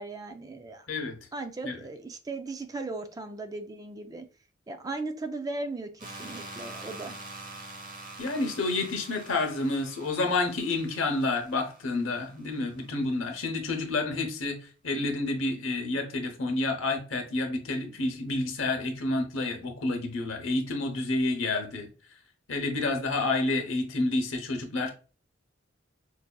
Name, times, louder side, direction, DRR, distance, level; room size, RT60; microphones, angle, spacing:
voice 1, 0.0-0.9 1.3-4.3 4.7-7.2, right 3 dB, 20° right, 0.4 m, -37 dB
sound 1, 6.0-12.8, right 2 dB, 45° right, 0.9 m, -45 dB
voice 2, 8.2-14.6 14.8-21.9 22.5-24.9, left 2 dB, 80° left, 0.9 m, -29 dB
4.6 x 2.7 x 2.2 m
head